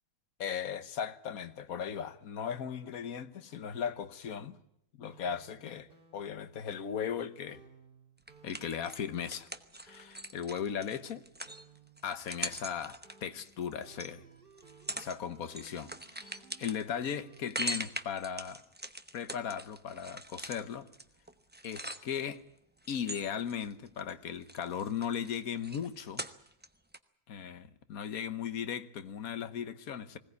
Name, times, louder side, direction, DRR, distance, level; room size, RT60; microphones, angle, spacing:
voice 1, 0.4-4.6 5.0-7.6 8.4-9.5 9.8-11.2 12.0-14.2 15.0-18.6 19.1-20.9 21.6-22.4 22.9-26.2 27.3-30.2, left 8 dB, 65° left, 1.4 m, -37 dB
sound 1, 5.1-17.6, right 4 dB, 35° right, 2.5 m, -59 dB
sound 2, 8.3-14.1 14.6-15.2 15.4-22.4 22.8-24.1 24.4-26.7 26.9-27.0, right 1 dB, 10° right, 0.6 m, -42 dB
20.5 x 17.5 x 9.5 m
omnidirectional pair, 1.7 m